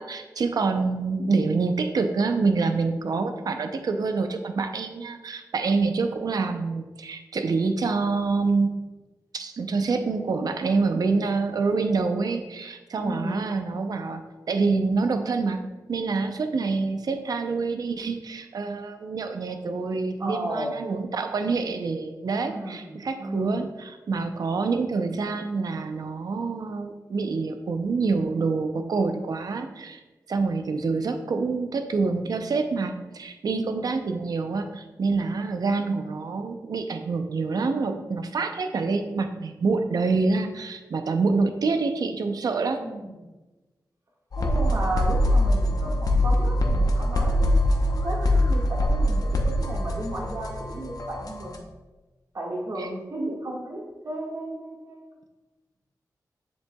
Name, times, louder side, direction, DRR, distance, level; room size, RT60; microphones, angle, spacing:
voice 1, 0.0-8.7 9.3-15.6 15.9-30.0 30.3-42.8 52.8-52.9 53.2-53.4, right 4 dB, 70° right, 7 dB, 0.6 m, -26 dB
voice 2, 13.0-13.5 20.2-20.7 22.5-22.9 23.2-23.6 33.5-33.9 42.8-43.1 44.4-47.5 47.9-51.6 52.3-55.2, right 1 dB, 50° right, -2 dB, 1.7 m, -34 dB
sound 1, 44.3-51.6, left 1 dB, 65° left, 0.8 m, -23 dB
7.5 x 7.1 x 2.3 m, 1.2 s
wide cardioid pair, 110°, 7 cm